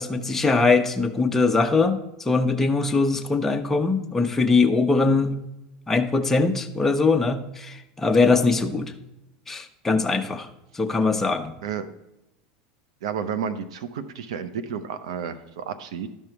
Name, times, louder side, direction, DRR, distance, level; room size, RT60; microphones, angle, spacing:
voice 1, 0.0-5.4 5.9-8.9 9.5-10.5 10.7-11.5, left 3 dB, 10° left, 4 dB, 0.8 m, -21 dB
voice 2, 11.6-12.0 13.0-16.1, right 7 dB, 85° right, 12 dB, 0.7 m, -31 dB
12.0 x 5.4 x 4.6 m, 0.90 s
supercardioid pair, 125°, 3 cm